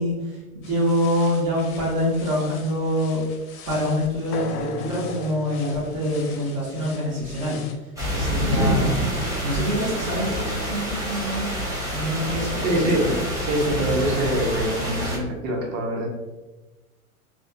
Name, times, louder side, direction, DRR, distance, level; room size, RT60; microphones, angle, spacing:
voice 1, 0.0-3.2 3.7-7.7 8.1-9.1 9.4-11.5 11.9-12.6, equal, 55° right, -7 dB, 1.4 m, -25 dB
sound 1, 0.6-7.7, left 5 dB, 30° left, 0.6 m, -45 dB
sound 2, 4.3-8.2, left 5 dB, 85° left, 0.5 m, -38 dB
sound 3, 8.0-15.2, equal, 5° right, 0.8 m, -27 dB
voice 2, 8.4-8.9 12.6-16.1, right 1 dB, 35° right, 0 dB, 0.9 m, -25 dB
3.1 x 2.4 x 2.7 m, 1.1 s
hypercardioid pair, 105°, 44 cm